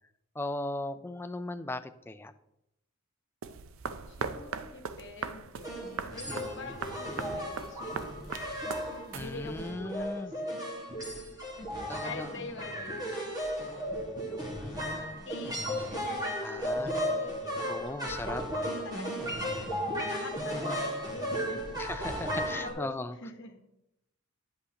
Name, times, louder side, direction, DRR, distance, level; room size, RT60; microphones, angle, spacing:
voice 1, 0.4-2.3 6.3-6.8 9.1-10.3 11.9-12.3 14.6-15.2 16.4-16.9 17.7-18.4 21.8-23.2, left 2 dB, 10° left, 10 dB, 0.3 m, -38 dB
sound 1, 3.4-9.7, right 5 dB, 70° right, 0.5 m, -40 dB
voice 2, 4.1-5.9 6.1-10.6 11.6-15.6 15.9-18.2 18.4-19.4 19.6-19.8 20.1-21.7 22.6-22.9 23.2-23.6, left 3 dB, 60° left, 5 dB, 1.2 m, -46 dB
sound 2, 5.6-22.7, equal, 20° right, 1.7 m, -35 dB
9.6 x 7.9 x 2.9 m, 0.86 s
head